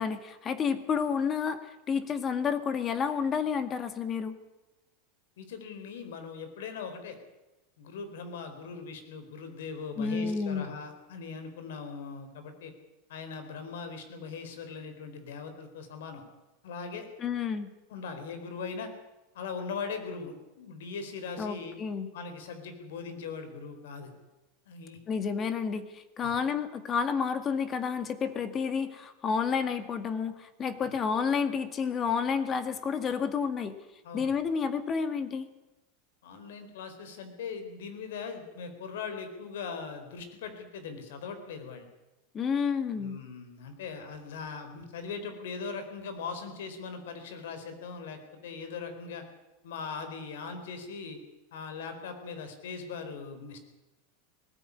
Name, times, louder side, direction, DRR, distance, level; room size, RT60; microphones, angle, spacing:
voice 1, 0.0-4.4 10.0-10.7 17.2-17.7 21.4-22.1 25.1-33.8 34.1-35.5 42.3-43.2, left 6 dB, 30° left, 11 dB, 1.9 m, -30 dB
voice 2, 5.4-7.2 7.8-12.7 13.1-16.2 16.6-17.1 17.9-18.9 19.3-21.8 22.1-24.1 24.7-25.0 26.2-26.4 30.8-31.0 34.0-34.3 36.2-41.8 43.0-49.2 49.6-51.2 51.5-53.6, left 5 dB, 80° left, 8 dB, 4.3 m, -40 dB
19.5 x 15.0 x 9.8 m, 1.0 s
supercardioid pair, 130°, 0 cm